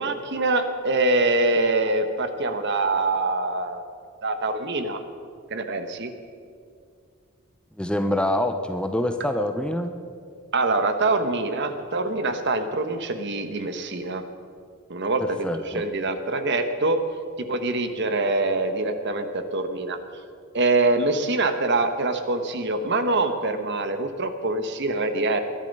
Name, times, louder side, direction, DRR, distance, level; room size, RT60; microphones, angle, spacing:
voice 1, 0.0-3.8 4.2-5.0 5.5-6.1 10.5-14.2 14.9-17.0 17.4-20.0 20.5-25.4, right 2 dB, 50° right, 8 dB, 1.2 m, -24 dB
voice 2, 7.8-9.9 15.2-15.8, left 1 dB, 5° left, 7 dB, 0.7 m, -26 dB
21.0 x 11.5 x 5.4 m, 2.2 s
head